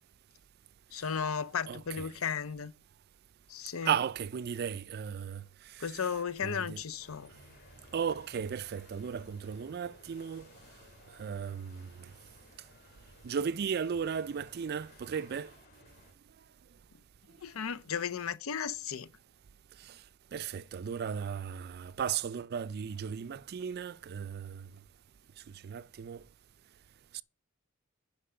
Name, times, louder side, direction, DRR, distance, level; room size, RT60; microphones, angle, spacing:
voice 1, 0.9-2.7 3.5-3.9 5.8-7.3 17.4-19.1, left 7 dB, 90° left, 0.6 m, -35 dB
voice 2, 1.7-2.1 3.8-5.4 5.7-6.1 6.4-6.8 7.9-10.5 11.2-12.1 13.2-15.5 19.8-20.0 20.3-24.7 25.6-26.2 27.1-27.2, right 7 dB, 50° right, 0.4 m, -35 dB
sound 1, 7.0-16.1, left 1 dB, 50° left, 2.7 m, -58 dB
10.0 x 5.9 x 5.6 m
head